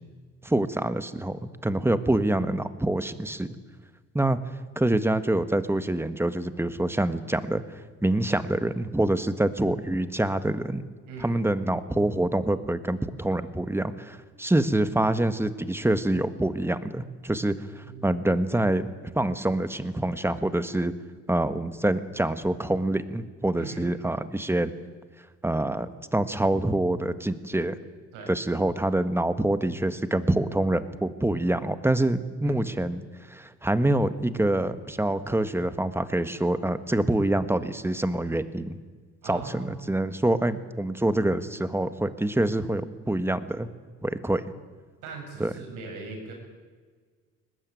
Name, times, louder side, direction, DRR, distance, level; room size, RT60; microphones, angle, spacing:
voice 1, 0.4-3.5 4.1-4.4 4.7-10.8 11.2-20.9 21.3-24.7 25.4-27.8 28.3-33.0 33.3-38.8 39.2-43.7 44.0-44.5 45.4-45.5, right 1 dB, 10° right, 11 dB, 1.5 m, -26 dB
voice 2, 17.8-18.2 23.6-23.9 28.1-28.4 32.4-32.6 39.2-39.8 45.0-46.3, right 4 dB, 90° right, 2 dB, 7.9 m, -40 dB
22.0 x 19.5 x 9.3 m, 1.5 s
cardioid pair, 90°, 30 cm